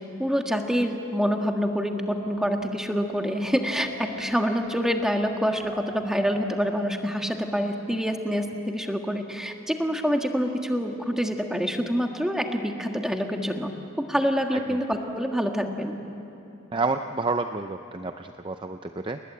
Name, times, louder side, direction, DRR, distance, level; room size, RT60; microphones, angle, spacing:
voice 1, 0.2-13.7 14.0-16.0, equal, ahead, 3 dB, 1.6 m, -26 dB
Wind, 1.6-7.6, equal, 65° right, 3.6 m, -45 dB
voice 2, 16.7-19.2, right 3 dB, 25° right, 7 dB, 0.5 m, -29 dB
29.5 x 20.0 x 8.5 m, 2.9 s
head